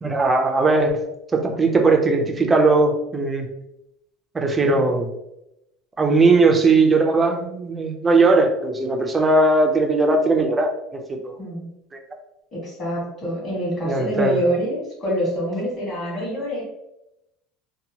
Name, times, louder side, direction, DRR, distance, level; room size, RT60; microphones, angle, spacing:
voice 1, 0.0-1.0 1.3-3.5 4.3-5.1 6.0-10.7 11.1-11.4 13.8-14.4, right 3 dB, 15° right, 3 dB, 0.3 m, -18 dB
voice 2, 11.4-11.7 12.5-16.6, equal, 30° left, -4 dB, 1.1 m, -26 dB
2.8 x 2.1 x 2.7 m, 0.84 s
cardioid pair, 165°, 0 cm